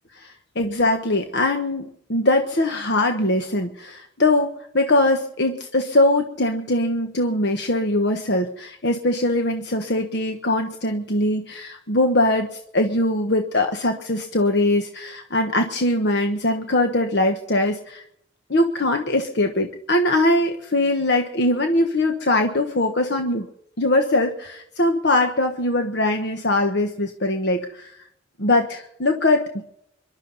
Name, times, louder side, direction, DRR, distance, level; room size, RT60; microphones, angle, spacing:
voice 1, 0.1-1.8 2.1-18.0 18.5-23.5 23.8-27.9 28.4-29.6, left 1 dB, 60° left, 4 dB, 1.3 m, -21 dB
26.0 x 12.0 x 4.1 m, 0.70 s
head